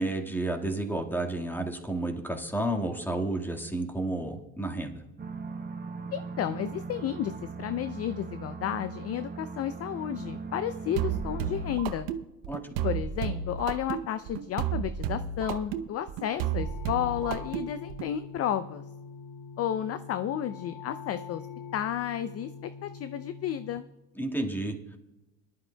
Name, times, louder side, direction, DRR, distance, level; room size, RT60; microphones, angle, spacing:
voice 1, 0.0-5.0 12.5-12.6 24.2-25.0, right 1 dB, 5° left, 2 dB, 1.7 m, -31 dB
sound 1, 5.2-11.8, right 4 dB, 20° right, 0.8 m, -39 dB
voice 2, 6.1-7.3 7.6-12.1 12.8-18.8 19.6-21.4 21.7-22.5 22.8-23.9, left 10 dB, 35° left, 12 dB, 0.5 m, -32 dB
sound 2, 11.0-18.1, right 8 dB, 75° right, 0.8 m, -32 dB
sound 3, 16.4-23.8, left 6 dB, 75° left, 0.9 m, -44 dB
22.5 x 11.5 x 2.3 m, 1.0 s
hypercardioid pair, 80°, 45 cm